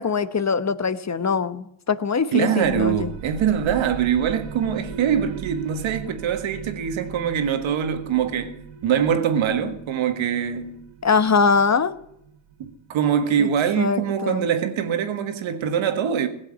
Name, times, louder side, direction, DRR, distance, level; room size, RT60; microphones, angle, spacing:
voice 1, 0.0-3.1 11.0-11.9 13.4-13.5 13.8-14.5, left 5 dB, 35° left, 1.2 m, -22 dB
voice 2, 2.3-10.8 12.6-16.3, right 8 dB, 85° right, 1.7 m, -23 dB
sound 1, 2.6-14.0, right 8 dB, 65° right, 1.4 m, -40 dB
17.0 x 7.5 x 10.0 m
cardioid pair, 60°, 46 cm